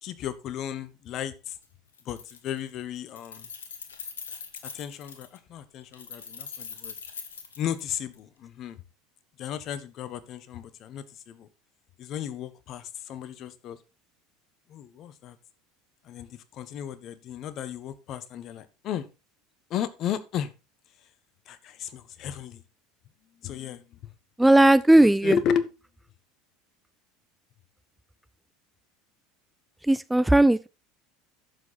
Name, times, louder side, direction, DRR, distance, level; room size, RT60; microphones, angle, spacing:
voice 1, 0.0-1.6 2.0-3.5 4.6-6.9 7.6-8.8 9.4-11.5 12.0-13.8 14.7-15.4 16.0-19.1 19.7-20.5 21.5-22.6 23.4-24.1 24.9-25.7, left 9 dB, 50° left, 1.2 m, -34 dB
Keys jangling, 1.5-1.6 1.9-2.7 3.0-5.4 5.9-8.2, left 6 dB, 85° left, 1.6 m, -42 dB
voice 2, 24.4-25.3 29.9-30.7, right 1 dB, 5° right, 0.4 m, -17 dB
11.0 x 7.3 x 4.1 m
hypercardioid pair, 75°, 0 cm